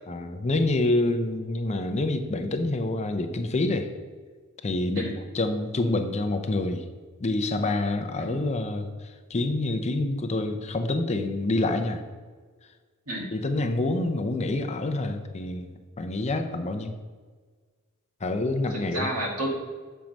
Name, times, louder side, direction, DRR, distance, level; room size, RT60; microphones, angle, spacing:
voice 1, 0.1-3.9 4.6-6.9 7.2-12.0 13.3-17.0 18.2-19.1, left 2 dB, 30° left, 6 dB, 0.5 m, -27 dB
voice 2, 18.7-19.6, right 1 dB, 85° right, 0 dB, 1.7 m, -30 dB
7.4 x 4.6 x 5.2 m, 1.5 s
head